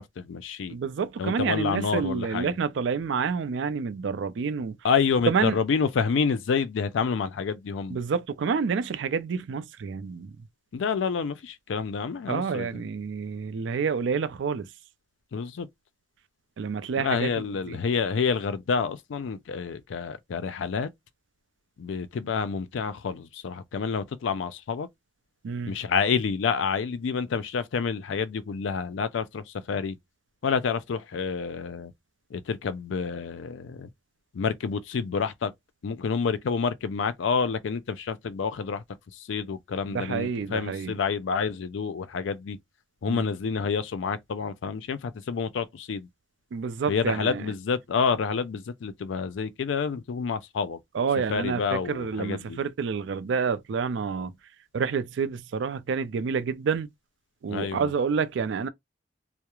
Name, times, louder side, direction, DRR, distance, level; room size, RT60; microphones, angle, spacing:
voice 1, 0.0-0.8 1.2-2.5 4.8-8.0 10.7-12.7 15.3-15.7 17.0-20.9 21.8-24.9 25.7-30.0 30.4-31.9 32.3-33.9 34.3-35.5 35.8-38.8 39.2-42.6 43.0-46.1 46.9-50.8 51.3-52.6 57.5-57.9, left 5 dB, 80° left, 0.4 m, -28 dB
voice 2, 0.7-4.8 5.3-5.6 7.9-10.3 12.3-14.7 16.6-17.8 25.4-25.8 39.9-41.0 43.1-43.3 46.5-47.5 50.9-54.3 54.7-56.9 57.4-58.7, right 5 dB, 70° right, 0.4 m, -28 dB
2.3 x 2.0 x 2.9 m
head